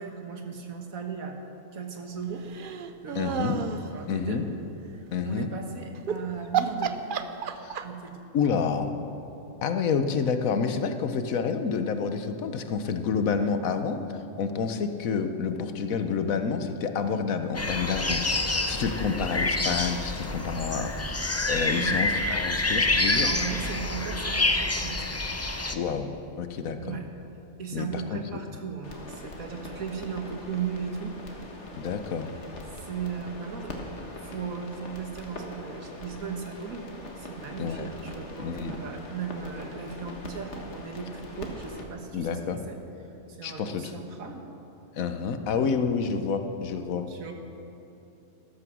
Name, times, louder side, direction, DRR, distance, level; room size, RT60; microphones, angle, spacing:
voice 1, 0.0-1.4 1.7-2.5 3.0-3.4 3.8-4.4 4.9-7.0 7.8-8.2 19.1-19.3 21.8-22.0 23.1-25.2 26.8-27.1 27.6-31.5 32.8-33.8 34.2-42.8 43.3-44.5 47.1-47.3, right 6 dB, 80° right, 4 dB, 1.8 m, -37 dB
sound 1, 2.5-3.9 6.0-6.2 6.5-8.1, right 7 dB, 50° right, 0.7 m, -30 dB
voice 2, 3.1-3.6 4.1-4.5 5.1-5.5 7.6-7.8 8.3-8.9 9.6-14.0 14.4-18.2 18.7-23.3 25.7-26.1 26.4-27.0 27.7-28.2 31.8-32.3 37.6-37.9 38.4-38.8 42.1-42.6 43.4-43.9 45.0-47.1, left 6 dB, 80° left, 8 dB, 1.3 m, -28 dB
sound 2, 17.5-25.7, left 2 dB, 25° left, 0.3 m, -27 dB
sound 3, 28.8-41.8, left 1 dB, 55° left, 1.9 m, -42 dB
14.0 x 13.0 x 6.2 m, 2.9 s
omnidirectional pair, 1.4 m